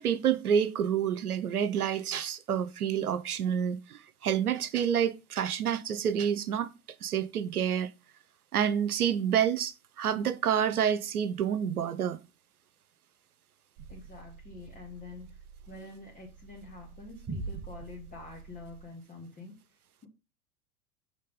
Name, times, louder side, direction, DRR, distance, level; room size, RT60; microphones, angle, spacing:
voice 1, 0.0-6.7 7.0-7.9 8.5-12.2, right 8 dB, 80° right, 0.7 m, -28 dB
sound 1, 13.8-18.9, right 4 dB, 25° right, 1.0 m, -44 dB
voice 2, 13.9-15.3 15.7-19.6, left 3 dB, 20° left, 1.3 m, -46 dB
6.6 x 3.4 x 5.1 m
figure-of-eight pair, 85°, 44 cm